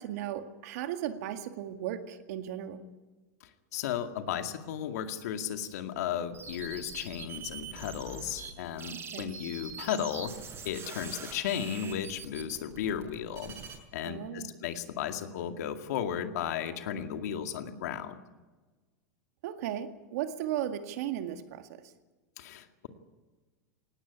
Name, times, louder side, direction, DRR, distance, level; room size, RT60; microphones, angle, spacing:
voice 1, 0.0-2.9 8.9-9.3 14.0-14.5 19.4-21.9, right 11 dB, 70° right, 2.0 m, -36 dB
voice 2, 3.4-10.4 10.6-13.5 13.9-18.2 22.4-22.9, left 9 dB, 75° left, 2.2 m, -35 dB
sound 1, 6.3-8.5 8.8-13.8, right 5 dB, 30° right, 6.8 m, -43 dB
18.5 x 17.0 x 9.7 m
hypercardioid pair, 115°, 9 cm